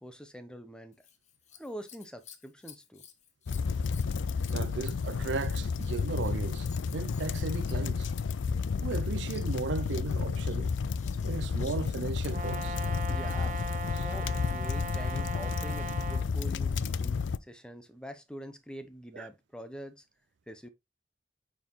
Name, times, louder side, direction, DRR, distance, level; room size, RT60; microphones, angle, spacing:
voice 1, 0.0-1.0 1.6-3.0 13.1-13.6 14.0-20.0 20.5-20.7, equal, 5° left, 0.8 m, -45 dB
Scissors, 0.9-12.3 14.2-14.8 15.6-15.7, left 8 dB, 40° left, 0.9 m, -56 dB
sound 1, 3.5-17.4, left 5 dB, 90° left, 0.4 m, -31 dB
voice 2, 4.5-8.1 8.8-10.7 11.2-12.8 13.9-14.1 19.1-19.3, right 4 dB, 75° right, 0.5 m, -36 dB
Brass instrument, 12.3-16.3, right 3 dB, 45° right, 1.1 m, -39 dB
9.0 x 4.4 x 3.0 m
head